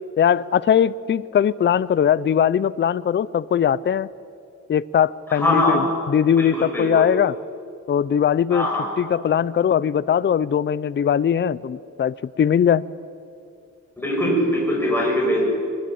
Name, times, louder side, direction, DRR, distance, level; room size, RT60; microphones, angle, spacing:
voice 1, 0.2-4.1 4.7-7.3 7.9-8.7 9.0-12.8, left 8 dB, 40° left, 18 dB, 0.5 m, -20 dB
voice 2, 5.3-5.8 6.4-6.9 8.5-8.9 14.0-15.4, left 1 dB, 5° left, -3 dB, 7.0 m, -21 dB
24.0 x 20.5 x 8.6 m, 2.4 s
wide cardioid pair, 145°, 30 cm